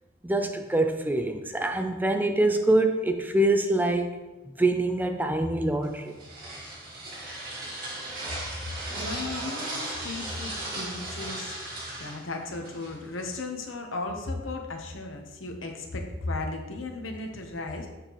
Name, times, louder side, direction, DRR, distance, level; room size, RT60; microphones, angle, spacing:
voice 1, 0.2-4.2 4.6-6.2, right 1 dB, 10° right, 5 dB, 0.4 m, -25 dB
sound 1, 5.8-13.3, right 1 dB, 45° right, 1.8 m, -37 dB
voice 2, 9.0-11.6 12.0-17.9, left 2 dB, 75° left, 3 dB, 1.0 m, -35 dB
7.0 x 6.4 x 3.1 m, 1.1 s
head